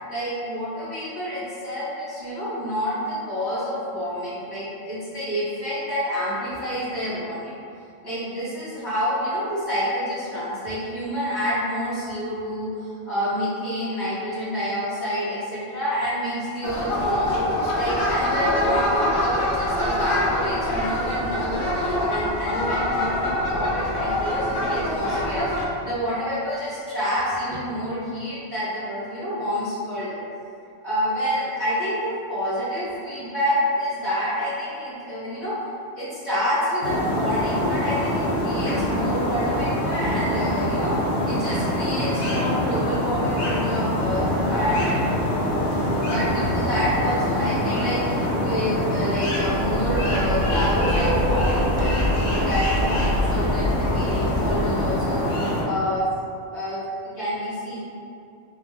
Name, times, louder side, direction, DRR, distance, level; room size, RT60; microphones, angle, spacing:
voice 1, 0.1-7.5 8.0-17.3 17.7-30.2 30.8-35.5 35.9-40.9 41.2-45.0 46.0-55.3 55.6-56.0 56.5-56.8 57.2-57.8, equal, 40° left, -14 dB, 1.6 m, -28 dB
sound 1, 16.6-25.7, left 1 dB, 55° left, 0.8 m, -24 dB
sound 2, 36.8-55.6, left 1 dB, 80° left, 1.0 m, -24 dB
sound 3, 49.3-55.2, equal, 60° right, 0.6 m, -26 dB
3.6 x 2.2 x 3.0 m, 2.5 s
omnidirectional pair, 1.1 m